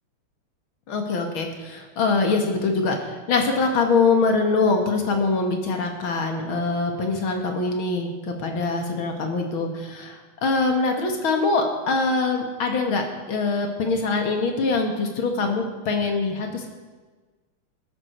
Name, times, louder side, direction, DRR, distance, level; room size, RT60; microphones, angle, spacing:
voice 1, 0.9-13.0 13.3-16.7, left 3 dB, 70° left, 3 dB, 2.5 m, -23 dB
17.0 x 13.0 x 4.5 m, 1.3 s
omnidirectional pair, 2.3 m